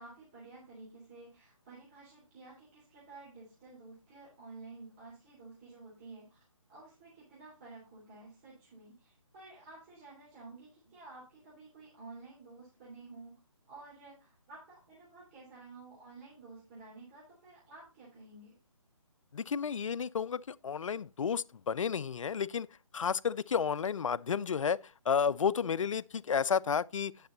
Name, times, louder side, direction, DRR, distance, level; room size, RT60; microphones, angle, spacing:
voice 1, 0.0-6.4 6.7-13.3 13.7-18.6, right 3 dB, 25° right, 3.3 m, -52 dB
voice 2, 19.3-22.7 22.9-24.8 25.1-27.1, left 6 dB, 70° left, 0.4 m, -31 dB
9.5 x 6.2 x 3.9 m
figure-of-eight pair, 155°, 17 cm